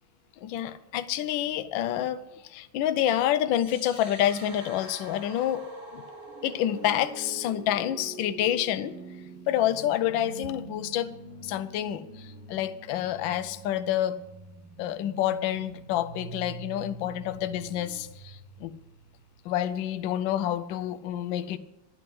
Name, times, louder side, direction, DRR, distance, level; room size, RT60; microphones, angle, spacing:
voice 1, 0.4-6.0 6.4-8.9 9.5-11.2 11.4-14.2 14.8-18.7 19.4-21.6, left 11 dB, 75° left, 14 dB, 1.3 m, -28 dB
sound 1, 3.5-19.5, right 3 dB, 80° right, 3.3 m, -45 dB
12.0 x 7.7 x 7.8 m, 1.0 s
omnidirectional pair, 2.2 m